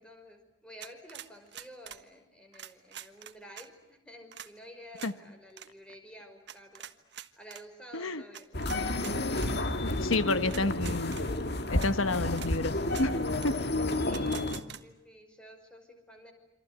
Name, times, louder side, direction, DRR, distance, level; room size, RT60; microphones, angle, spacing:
voice 1, 0.0-6.9 7.4-9.4 9.7-10.0 10.5-10.7 14.0-16.3, equal, 5° left, 5.5 m, -51 dB
sound 1, 0.8-2.0 2.5-3.7 4.3-4.5 5.0-5.1 5.5-5.7 6.5-7.6 8.3-9.5 10.1-10.2 10.5-11.2 11.8-11.9 12.3-12.5 12.9-13.1 13.4-13.5 14.1-14.8, right 10 dB, 55° right, 1.4 m, -45 dB
sound 2, 8.5-14.6, left 1 dB, 50° left, 2.1 m, -31 dB
voice 2, 9.8-11.2 11.7-13.7, left 3 dB, 80° left, 1.2 m, -30 dB
28.0 x 26.5 x 8.0 m
head